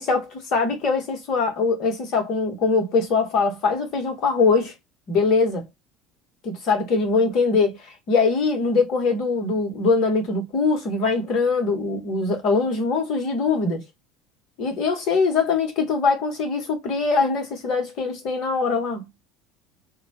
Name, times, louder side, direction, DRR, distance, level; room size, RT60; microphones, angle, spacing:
voice 1, 0.0-4.7 5.1-5.6 6.4-7.8 8.1-13.8 14.6-19.0, left 4 dB, 50° left, 0.9 m, -22 dB
2.2 x 2.0 x 2.7 m
figure-of-eight pair, 65°, 0 cm